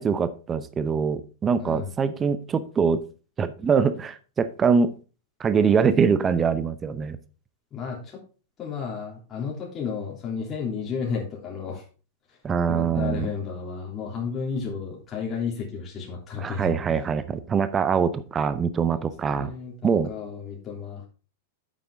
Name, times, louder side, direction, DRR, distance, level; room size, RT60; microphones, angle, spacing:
voice 1, 0.0-3.0 3.4-4.9 5.4-7.2 12.4-13.3 16.4-19.5 19.8-20.1, right 6 dB, 20° right, 13 dB, 0.7 m, -23 dB
voice 2, 1.6-1.9 7.7-8.2 8.6-11.8 12.3-12.4 12.7-17.0 18.9-19.0 19.3-21.1, left 6 dB, 25° left, -3 dB, 3.1 m, -32 dB
8.8 x 7.6 x 3.6 m, 0.35 s
figure-of-eight pair, 95°, 0 cm